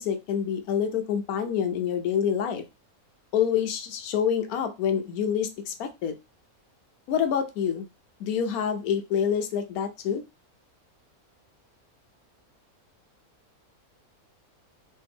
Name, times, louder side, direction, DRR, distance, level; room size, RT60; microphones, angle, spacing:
voice 1, 0.0-2.6 3.3-6.1 7.1-7.9 8.2-10.2, left 8 dB, 80° left, 7 dB, 1.1 m, -27 dB
3.2 x 2.5 x 3.4 m, 0.27 s
omnidirectional pair, 1.6 m